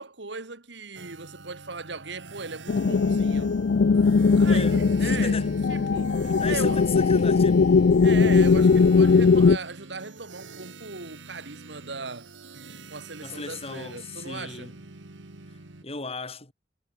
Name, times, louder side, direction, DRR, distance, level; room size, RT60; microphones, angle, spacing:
voice 1, 0.0-3.6 4.4-5.4 5.7-6.9 8.0-12.3 12.9-14.7, right 3 dB, 70° right, 2.1 m, -38 dB
sound 1, 0.9-15.8, right 3 dB, 90° right, 1.7 m, -46 dB
sound 2, 2.7-9.6, left 4 dB, 65° left, 0.4 m, -19 dB
voice 2, 4.4-5.6 6.2-7.8 13.2-14.7 15.8-16.5, left 3 dB, 35° left, 4.2 m, -35 dB
head